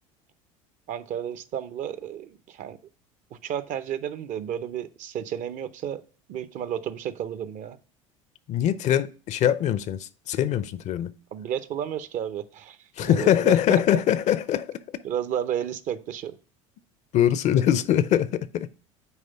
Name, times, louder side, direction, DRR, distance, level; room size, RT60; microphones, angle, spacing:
voice 1, 0.9-2.8 3.3-6.0 6.3-7.8 11.3-14.0 15.0-16.4, right 9 dB, 50° right, 0.6 m, -32 dB
voice 2, 8.5-11.1 13.0-14.8 17.1-18.7, left 10 dB, 45° left, 0.5 m, -22 dB
9.2 x 3.1 x 5.6 m
hypercardioid pair, 70°, 17 cm